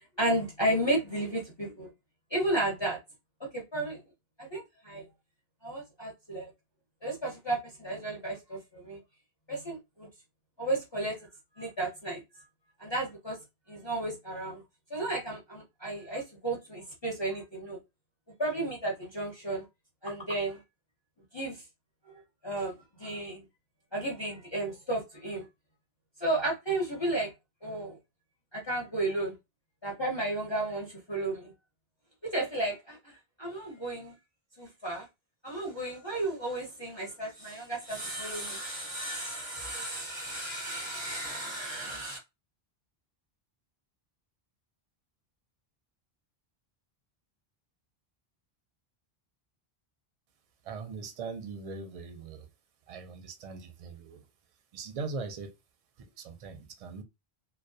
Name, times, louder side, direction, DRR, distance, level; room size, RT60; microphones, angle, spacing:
voice 1, 0.2-1.9 2.3-3.0 3.4-4.0 4.4-5.1 5.6-6.5 7.0-9.0 9.5-10.1 10.6-11.2 11.6-12.2 12.8-13.4 13.7-14.6 14.9-17.8 18.4-19.6 20.0-20.6 21.3-21.6 22.1-22.2 22.4-23.4 23.9-25.4 26.2-27.3 27.6-28.0 28.5-29.4 29.8-31.5 32.2-34.1 34.6-35.1 35.4-42.2, right 2 dB, 30° left, 0.7 m, -33 dB
voice 2, 50.6-52.5 52.9-54.3 54.7-55.6 56.0-57.0, right 4 dB, 45° right, 0.5 m, -40 dB
2.2 x 2.2 x 2.6 m
omnidirectional pair, 1.0 m